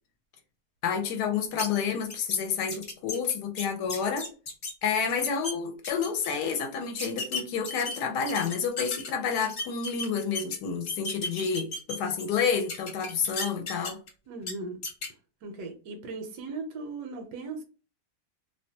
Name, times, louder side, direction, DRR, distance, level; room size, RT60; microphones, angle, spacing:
voice 1, 0.8-4.3 4.8-14.0, left 6 dB, 75° left, 1.1 m, -29 dB
sound 1, 1.6-1.7 2.1-2.4 2.7-4.7 5.1-5.5 5.8-6.3 7.0-9.1 9.4-10.6 10.9-12.3 12.7-14.1 14.4-14.5 14.8-15.1, left 3 dB, 55° left, 1.1 m, -34 dB
voice 2, 14.3-14.8 15.4-17.6, right 3 dB, 75° right, 1.1 m, -38 dB
2.8 x 2.2 x 2.6 m
omnidirectional pair, 1.8 m